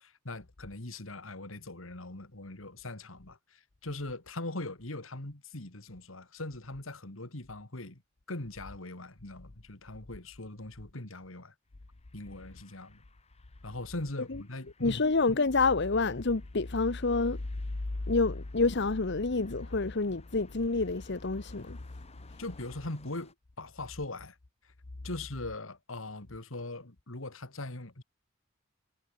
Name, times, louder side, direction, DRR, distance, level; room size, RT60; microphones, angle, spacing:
voice 1, 0.0-8.0 8.3-11.5 12.1-13.0 13.6-15.0 22.4-24.4 25.0-28.0, left 2 dB, 80° left, 2.8 m, -41 dB
sound 1, 11.7-23.3, left 3 dB, 30° left, 6.9 m, -61 dB
voice 2, 14.8-17.4 18.1-21.8, left 3 dB, 60° left, 1.0 m, -28 dB
head